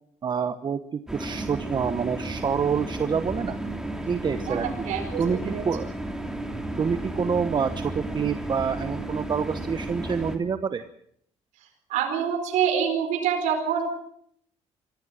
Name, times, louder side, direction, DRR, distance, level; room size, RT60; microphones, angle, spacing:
voice 1, 0.2-3.6 4.1-4.7 5.2-5.9 6.8-10.8, right 6 dB, 35° right, 11 dB, 1.1 m, -27 dB
sound 1, 1.1-10.4, right 1 dB, 5° right, 3.0 m, -33 dB
voice 2, 4.8-5.6 11.9-13.9, right 8 dB, 85° right, 4 dB, 4.6 m, -26 dB
24.0 x 15.0 x 7.5 m, 0.68 s
cardioid pair, 105°, 12 cm